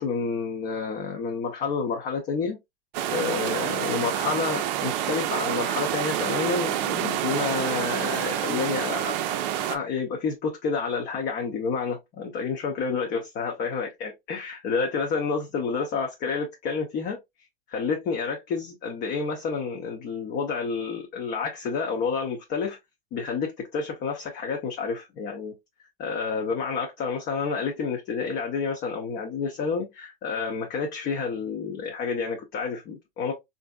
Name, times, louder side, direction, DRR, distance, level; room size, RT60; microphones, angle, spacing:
voice 1, 0.0-2.6 3.1-9.2 9.7-17.2 17.7-22.8 23.1-25.5 26.0-33.3, left 5 dB, 35° left, 0.7 m, -29 dB
sound 1, 2.9-9.8, right 11 dB, 45° right, 0.5 m, -28 dB
3.2 x 2.6 x 2.3 m
hypercardioid pair, 115°, 30 cm